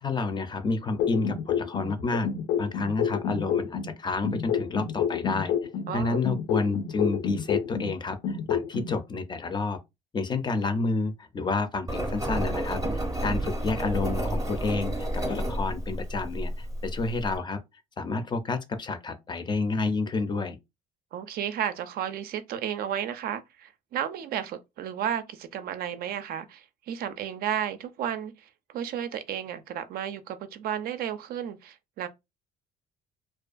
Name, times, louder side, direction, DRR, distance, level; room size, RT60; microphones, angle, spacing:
voice 1, 0.0-2.3 2.6-5.5 5.9-9.8 10.1-17.6 18.0-20.6, left 3 dB, 25° left, 0.4 m, -30 dB
sound 1, 1.0-3.9 4.2-7.9 8.2-8.9, left 8 dB, 90° left, 0.5 m, -28 dB
voice 2, 5.9-6.2 13.3-13.5 21.1-32.1, right 9 dB, 65° right, 0.4 m, -33 dB
Engine, 11.9-17.4, right 1 dB, 20° right, 0.6 m, -30 dB
2.4 x 2.2 x 2.4 m
cardioid pair, 110°, 17 cm